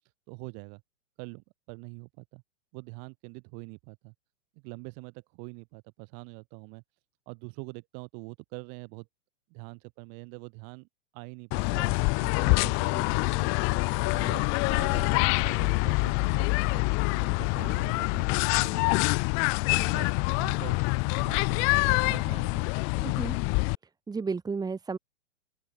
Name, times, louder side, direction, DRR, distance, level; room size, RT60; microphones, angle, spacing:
voice 1, 0.3-0.8 1.2-2.4 2.7-4.1 4.6-6.8 7.3-9.1 9.5-10.9 11.1-13.5 14.0-19.1 19.7-20.8 21.2-23.1, right 40 dB or more, 40° right, 7.4 m, -44 dB
sound 1, 11.5-23.7, left 38 dB, 35° left, 1.5 m, -26 dB
voice 2, 23.0-23.4 24.1-25.0, right 4 dB, 10° right, 3.7 m, -32 dB
open air
hypercardioid pair, 125°, 37 cm